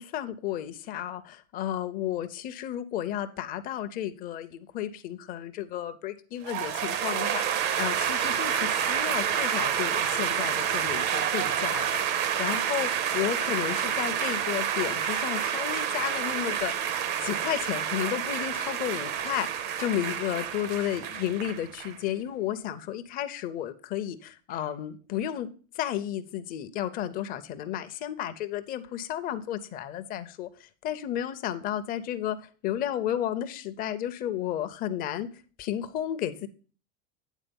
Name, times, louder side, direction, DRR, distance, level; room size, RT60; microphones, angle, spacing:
voice 1, 0.0-16.9 17.2-19.5 19.8-25.5 25.7-35.3 35.6-36.5, left 11 dB, 25° left, 11 dB, 0.5 m, -33 dB
sound 1, 6.4-22.0, right 9 dB, 30° right, 0.4 m, -29 dB
9.1 x 4.0 x 5.2 m, 0.38 s
supercardioid pair, 155°, 36 cm